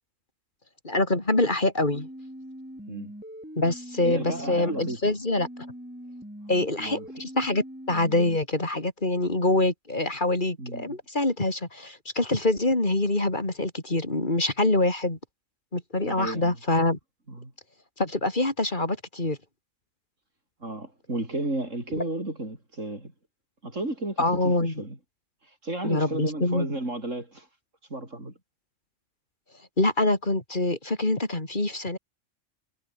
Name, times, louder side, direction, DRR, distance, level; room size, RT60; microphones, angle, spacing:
voice 1, 0.8-2.1 3.6-5.5 6.5-15.2 15.7-17.0 18.0-19.4 22.0-22.1 24.2-24.8 25.8-26.7 29.8-32.0, left 2 dB, 40° left, 4.1 m, -25 dB
sound 1, 1.9-4.9 5.4-8.4, equal, 5° right, 5.1 m, -42 dB
voice 2, 4.0-5.0 6.8-7.1 10.6-11.0 16.0-16.6 17.3-17.5 20.6-23.1 23.6-25.0 25.6-27.5 27.9-28.3, right 2 dB, 75° right, 7.1 m, -33 dB
omnidirectional pair, 1.3 m